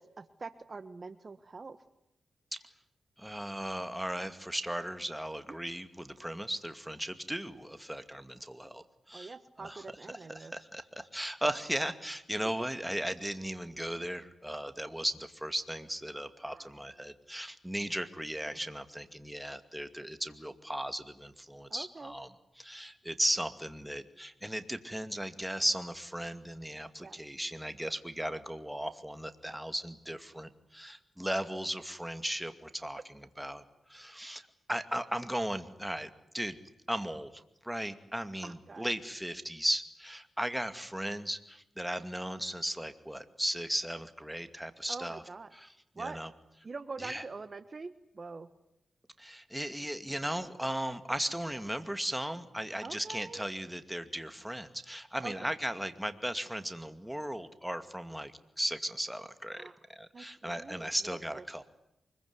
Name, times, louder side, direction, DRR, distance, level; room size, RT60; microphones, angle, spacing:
voice 1, 0.0-1.8 9.1-10.5 16.5-16.6 21.7-22.1 27.0-27.2 38.4-38.9 44.9-45.5 45.9-46.2 46.6-48.5 52.8-53.5 55.2-55.5 59.6-59.8 60.1-60.9 61.3-61.6, right 4 dB, 45° right, 12 dB, 1.4 m, -44 dB
voice 2, 3.2-22.3 22.6-33.6 33.9-36.6 36.9-45.2 45.5-46.3 47.0-47.2 49.2-61.6, equal, 5° right, 9 dB, 2.3 m, -36 dB
24.5 x 22.0 x 9.8 m, 0.80 s
cardioid pair, 60°, 0 cm